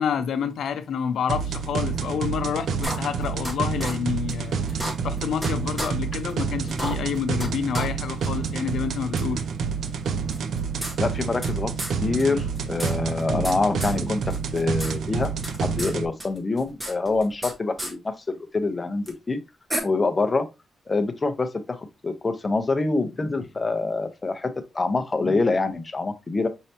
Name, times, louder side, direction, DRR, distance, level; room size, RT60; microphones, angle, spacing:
voice 1, 0.0-9.4, left 7 dB, 70° left, 0.6 m, -28 dB
sound 1, 1.3-16.1, right 5 dB, 70° right, 0.5 m, -28 dB
sound 2, 2.8-3.5 3.8-3.9 4.3-4.4 4.7-5.5 5.8-5.9 6.3-6.4 6.7-7.5 7.7-7.9 8.2-8.3 9.2-9.3 10.3-11.5 11.8-11.9 12.2-12.3 12.5-13.5 13.8-14.0 14.3-14.9 15.2-15.9 16.2-17.5 17.8-17.9 19.1-19.2 19.7-19.8, equal, 15° right, 0.8 m, -31 dB
voice 2, 11.0-11.7 12.0-15.3 15.6-19.4 19.8-20.5 20.9-26.5, left 3 dB, 20° left, 0.5 m, -25 dB
5.4 x 3.2 x 2.7 m
wide cardioid pair, 180°, 0 cm